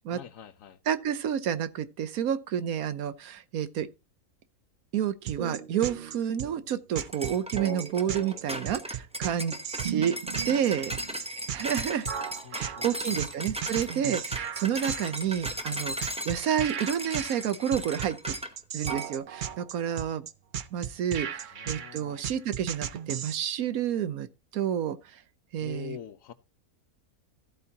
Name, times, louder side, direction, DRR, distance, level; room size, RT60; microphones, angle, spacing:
voice 1, 0.1-0.8 12.4-13.2 21.5-22.2 25.6-26.3, left 11 dB, 70° left, 1.2 m, -45 dB
voice 2, 0.9-3.9 4.9-9.6 9.8-10.2 10.4-10.9 11.5-12.1 12.5-18.2 18.7-20.3 20.7-24.3 24.5-25.2 25.5-26.0, right 9 dB, 80° right, 1.3 m, -30 dB
sound 1, 5.3-23.4, right 9 dB, 60° right, 0.5 m, -35 dB
sound 2, 7.0-18.5 18.9-19.1, right 1 dB, 5° right, 0.6 m, -37 dB
14.5 x 8.3 x 2.9 m
omnidirectional pair, 1.5 m